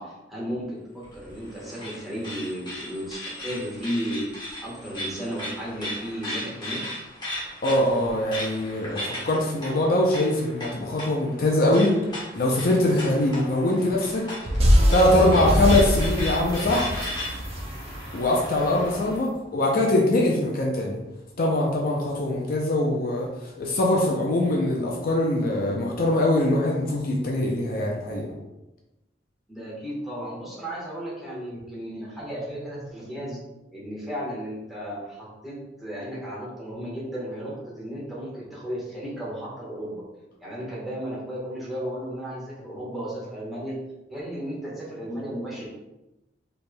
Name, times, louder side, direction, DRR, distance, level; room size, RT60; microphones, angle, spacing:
voice 1, 0.0-6.8 29.5-33.4 33.7-40.0 40.4-43.8 44.1-45.7, equal, ahead, -7 dB, 1.3 m, -34 dB
sound 1, 1.0-19.2, left 1 dB, 25° left, 1.1 m, -37 dB
voice 2, 7.6-11.9 12.4-14.2 14.9-16.9 18.1-21.0 21.4-23.3 23.6-28.3, left 1 dB, 55° left, -1 dB, 0.5 m, -22 dB
sound 2, 14.5-18.8, equal, 35° right, 0.6 m, -23 dB
4.3 x 3.3 x 2.2 m, 0.98 s
head